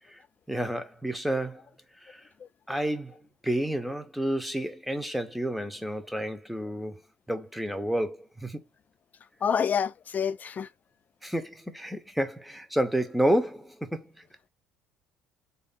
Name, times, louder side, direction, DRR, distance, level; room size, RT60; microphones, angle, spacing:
voice 1, 0.5-1.7 2.0-2.2 2.7-7.0 7.3-8.6 11.2-14.1, right 1 dB, ahead, 0.9 m, -30 dB
voice 2, 9.4-10.7, left 7 dB, 35° left, 0.4 m, -27 dB
3.6 x 2.7 x 3.6 m
hypercardioid pair, 60°, 5 cm